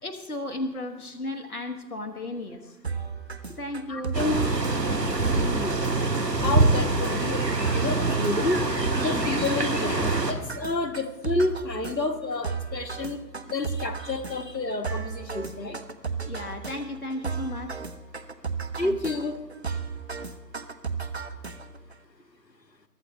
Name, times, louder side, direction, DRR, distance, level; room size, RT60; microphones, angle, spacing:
voice 1, 0.0-2.7 3.5-4.2 16.2-17.7 18.8-19.0, left 2 dB, 60° left, 7 dB, 1.4 m, -34 dB
sound 1, 2.8-21.9, right 5 dB, 40° right, 0.7 m, -35 dB
voice 2, 3.9-4.4 5.3-5.7 6.3-7.4 7.7-8.6 9.0-15.8 18.8-19.3, left 2 dB, 80° left, 8 dB, 1.5 m, -29 dB
sound 2, 4.1-10.3, right 2 dB, 75° right, 1.8 m, -25 dB
23.0 x 12.5 x 3.2 m, 1.1 s
figure-of-eight pair, 150°, 50 cm